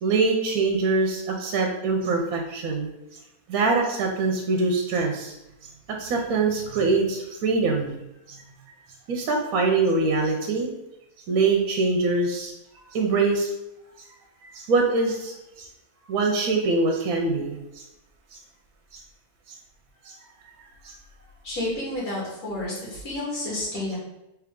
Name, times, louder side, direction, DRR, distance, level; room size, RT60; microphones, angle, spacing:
voice 1, 0.0-2.9 3.5-5.3 6.0-8.0 8.3-8.4 9.1-10.7 11.3-12.5 12.9-13.5 14.5-15.7 16.1-17.8 18.3-18.4 18.9-19.0 20.1-20.2 20.8-21.0, right 3 dB, 70° right, 1 dB, 1.0 m, -24 dB
voice 2, 21.4-24.0, left 1 dB, 65° left, -6 dB, 1.9 m, -30 dB
3.5 x 3.1 x 3.6 m, 0.91 s
omnidirectional pair, 1.7 m